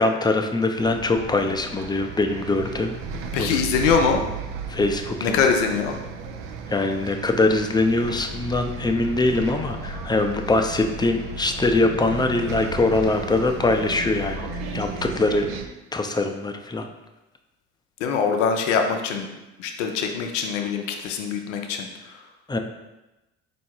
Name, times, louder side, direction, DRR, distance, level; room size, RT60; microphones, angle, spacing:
voice 1, 0.0-3.0 3.4-3.6 4.7-5.4 6.7-14.5 14.7-15.5 15.9-16.9 22.5-22.6, left 2 dB, 10° left, 5 dB, 0.5 m, -22 dB
Bus, 0.8-15.7, right 3 dB, 75° right, 0.6 m, -34 dB
voice 2, 3.3-4.2 5.2-6.0 18.0-19.3 19.6-21.9, left 6 dB, 90° left, 4 dB, 0.5 m, -23 dB
4.5 x 2.7 x 4.4 m, 1.0 s
hypercardioid pair, 55°, 36 cm